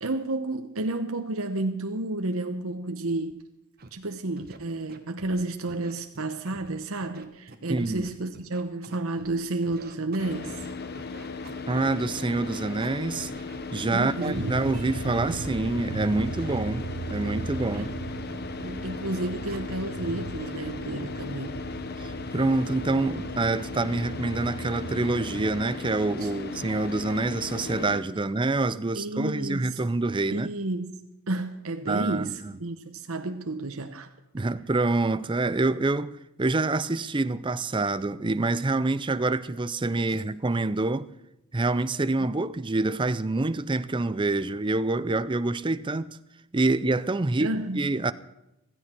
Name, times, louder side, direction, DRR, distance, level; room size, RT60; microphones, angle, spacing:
voice 1, 0.0-3.4 3.9-10.7 13.9-14.5 17.7-17.9 18.3-21.7 26.2-26.3 28.9-29.8 30.3-31.0 31.3-34.1 47.4-47.9, right 2 dB, 65° right, 1.0 m, -31 dB
Scratching (performance technique), 3.8-3.9 4.4-4.6 4.9-5.4 5.7-6.7 7.0-9.3 9.6-14.7 14.9-15.2 15.6-16.6 17.1-17.2 17.5-17.9 18.3-19.9 20.2-20.5 21.0-21.2, right 2 dB, 45° right, 1.4 m, -47 dB
voice 2, 7.7-8.1 11.7-13.3 13.7-17.9 22.0-30.5 31.9-32.5 34.3-41.1 41.5-46.2 46.5-47.5 47.8-48.1, right 2 dB, 20° right, 0.5 m, -26 dB
Car / Idling, 10.2-28.0, left 4 dB, 45° left, 0.9 m, -37 dB
sound 1, 14.3-25.6, right 3 dB, 85° right, 0.8 m, -38 dB
16.0 x 14.0 x 4.5 m
head